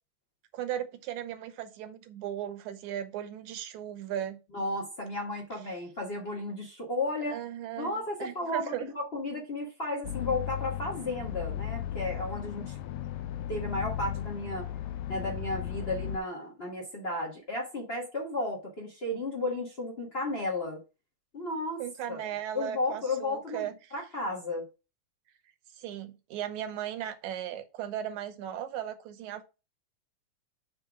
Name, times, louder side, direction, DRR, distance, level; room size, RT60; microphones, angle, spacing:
voice 1, 0.5-4.4 7.3-7.9 8.2-8.9 21.8-23.9 25.7-29.4, right 10 dB, 80° right, 2.2 m, -37 dB
voice 2, 4.5-7.4 7.8-13.1 13.5-14.7 15.1-20.8 21.3-21.8 22.1-22.2 22.5-24.7, left 2 dB, 35° left, 0.9 m, -34 dB
sound 1, 10.0-16.2, left 11 dB, 75° left, 1.8 m, -36 dB
7.6 x 3.5 x 6.0 m
omnidirectional pair, 3.5 m